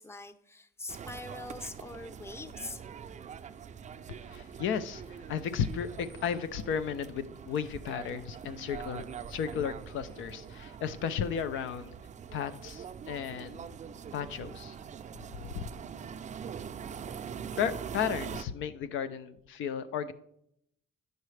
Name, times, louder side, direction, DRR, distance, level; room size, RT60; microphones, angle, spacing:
voice 1, 0.0-2.8, left 2 dB, 15° left, 0.6 m, -43 dB
sound 1, 0.9-18.4, right 7 dB, 35° right, 0.4 m, -43 dB
voice 2, 4.1-11.9 12.3-13.7 14.1-14.8 15.3-15.7 17.6-20.1, left 7 dB, 80° left, 0.5 m, -34 dB
9.2 x 6.5 x 3.2 m
cardioid pair, 90°, 20 cm